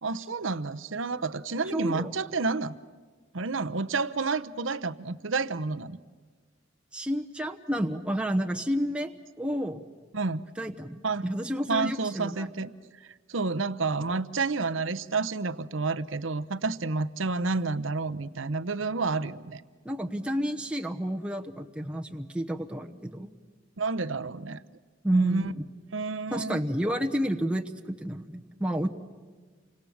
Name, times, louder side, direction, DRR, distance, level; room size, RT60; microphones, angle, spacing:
voice 1, 0.0-2.8 3.3-6.0 10.1-10.4 11.0-11.2 11.7-12.7 13.0-19.6 23.8-24.6 25.1-25.5 25.9-26.6, right 3 dB, 75° right, 11 dB, 1.0 m, -30 dB
voice 2, 1.7-2.1 6.9-9.1 9.4-9.8 10.6-12.5 19.8-23.3 25.0-25.7 26.3-28.9, equal, 5° right, 2 dB, 1.1 m, -30 dB
29.0 x 25.0 x 7.3 m, 1.5 s
head